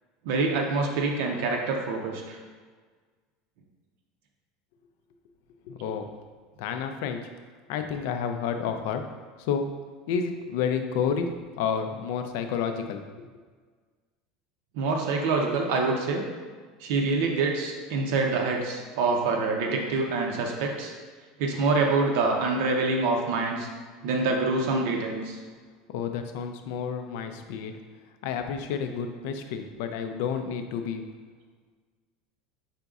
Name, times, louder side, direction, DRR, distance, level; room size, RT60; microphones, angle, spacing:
voice 1, 0.2-2.4 14.7-16.3 16.8-20.9 21.4-23.7 24.0-25.4, right 3 dB, 65° right, 1 dB, 0.6 m, -26 dB
voice 2, 5.6-6.1 6.6-7.2 7.7-9.0 9.4-9.7 10.1-11.3 11.6-13.3 25.9-27.8 28.2-31.0, left 7 dB, 60° left, 6 dB, 0.4 m, -30 dB
5.1 x 4.0 x 2.3 m, 1.5 s
supercardioid pair, 170°, 0 cm